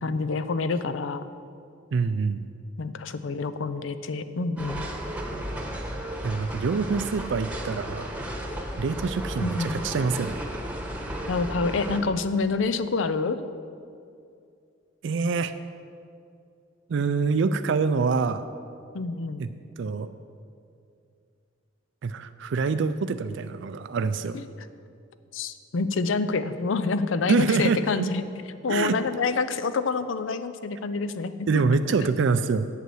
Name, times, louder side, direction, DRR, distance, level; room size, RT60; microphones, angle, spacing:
voice 1, 0.0-1.2 2.8-4.8 9.4-9.8 11.3-13.4 18.9-19.5 24.3-24.4 25.3-28.2 28.6-31.5, left 4 dB, 90° left, 12 dB, 0.5 m, -27 dB
voice 2, 1.9-2.5 6.2-8.1 8.8-10.4 15.0-15.5 16.9-18.5 19.4-19.5 19.8-20.1 22.0-24.4 27.3-28.1 28.7-29.0 31.5-32.7, right 4 dB, 70° right, 11 dB, 0.4 m, -25 dB
sound 1, 4.6-12.0, right 1 dB, 10° right, 1.0 m, -34 dB
8.3 x 7.7 x 7.7 m, 2.4 s
head